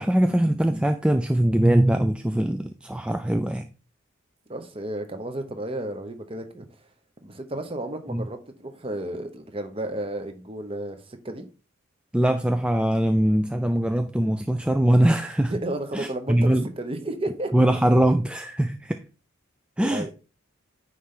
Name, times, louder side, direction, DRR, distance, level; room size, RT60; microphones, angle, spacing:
voice 1, 0.0-3.7 8.1-8.3 12.1-15.5 15.9-16.7 17.5-19.0 19.8-20.1, right 1 dB, 5° right, 0.3 m, -22 dB
voice 2, 4.5-6.7 7.2-11.4 15.5-17.5 19.8-20.1, right 1 dB, 25° right, 1.0 m, -32 dB
9.4 x 3.3 x 5.6 m
head